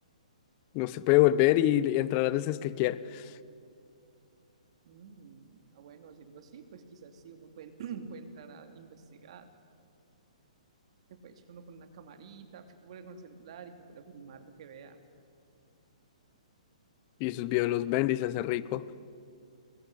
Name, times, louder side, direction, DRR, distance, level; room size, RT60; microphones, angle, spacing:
voice 1, 0.7-3.2 17.2-18.9, left 15 dB, 30° left, 0.8 m, -26 dB
voice 2, 4.8-9.5 11.1-15.0, right 6 dB, 50° right, 2.9 m, -48 dB
23.0 x 21.0 x 10.0 m
hypercardioid pair, 155°, 4 cm